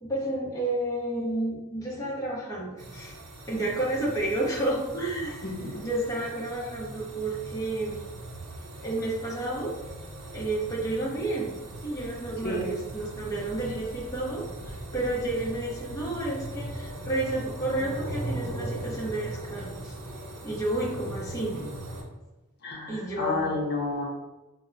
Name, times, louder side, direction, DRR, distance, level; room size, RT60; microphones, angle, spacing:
voice 1, 0.0-3.1 3.5-5.4 5.8-8.0 8.8-9.7 10.3-11.5 11.8-19.9 20.4-21.5 22.9-23.6, right 2 dB, 15° left, -5 dB, 0.8 m, -31 dB
sound 1, 2.8-22.0, right 1 dB, 85° right, 0.8 m, -39 dB
voice 2, 22.6-24.1, left 2 dB, 50° left, -3 dB, 0.8 m, -30 dB
5.8 x 2.1 x 2.6 m, 1.1 s
head